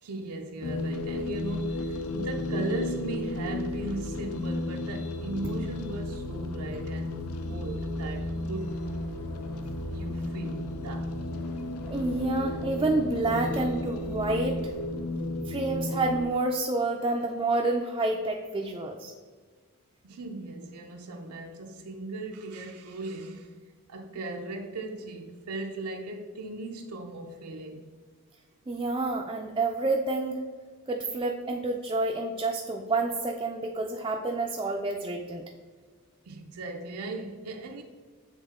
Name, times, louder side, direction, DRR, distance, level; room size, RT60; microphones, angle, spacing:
voice 1, 0.0-8.8 9.9-11.2 20.0-23.6 23.9-27.9 36.3-37.8, right 2 dB, 80° right, 0.5 m, -38 dB
sound 1, 0.6-16.2, left 2 dB, 80° left, 0.5 m, -33 dB
sound 2, 8.5-15.2, left 1 dB, 50° left, 1.3 m, -49 dB
voice 2, 11.9-14.6 15.5-19.1 28.7-30.4 30.9-35.4, right 2 dB, 20° right, 0.4 m, -29 dB
8.3 x 3.6 x 3.6 m
head